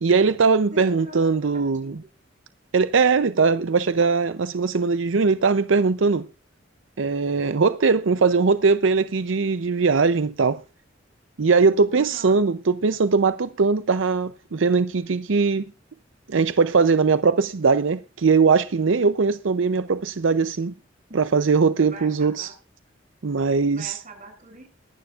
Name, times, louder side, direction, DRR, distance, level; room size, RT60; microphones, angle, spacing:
voice 1, 0.0-2.0 2.7-6.3 7.0-10.6 11.4-15.7 16.3-20.7 21.1-22.5 23.2-24.0, right 4 dB, 80° right, 0.6 m, -20 dB
voice 2, 0.7-2.1 11.9-12.4 21.8-22.5 23.7-24.7, right 2 dB, 40° right, 6.9 m, -43 dB
22.0 x 11.5 x 2.5 m
head